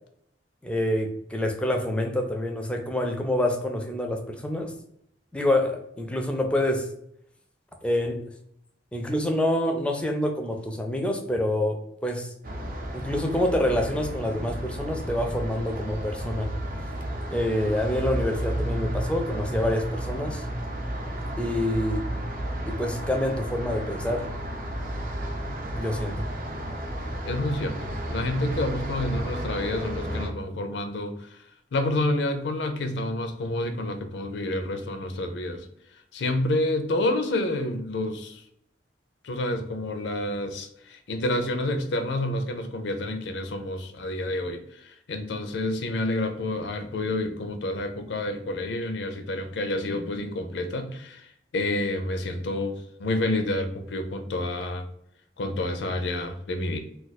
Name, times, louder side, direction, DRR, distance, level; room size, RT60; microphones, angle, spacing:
voice 1, 0.6-4.7 5.3-6.9 7.8-8.2 8.9-12.3 12.9-16.5 17.3-20.4 21.4-22.0 22.7-24.3 25.7-26.3, left 1 dB, 5° left, 3 dB, 0.4 m, -27 dB
sound 1, 12.4-30.3, right 1 dB, 50° right, 0.5 m, -32 dB
voice 2, 27.2-31.4 31.7-35.7 36.1-38.4 39.2-54.9 55.4-56.8, left 1 dB, 80° left, 8 dB, 0.5 m, -29 dB
2.4 x 2.3 x 3.9 m, 0.73 s
head